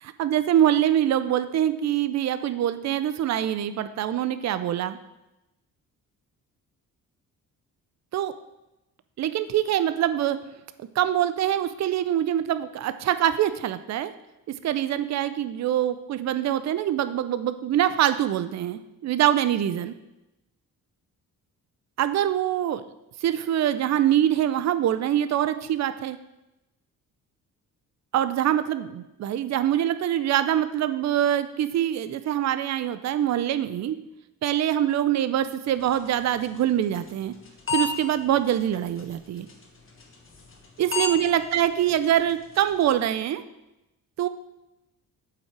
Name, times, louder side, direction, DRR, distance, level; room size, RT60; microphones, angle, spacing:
voice 1, 0.0-5.0 8.1-8.3 9.2-10.4 11.0-14.1 14.6-19.9 22.0-22.8 23.2-26.2 28.1-34.0 34.4-37.3 37.7-39.5 40.8-43.4 44.2-44.3, right 11 dB, 50° right, 12 dB, 0.5 m, -24 dB
sound 1, 35.7-43.0, left 4 dB, 35° left, 1.5 m, -36 dB
7.7 x 5.7 x 4.6 m, 0.95 s
cardioid pair, 110°, 34 cm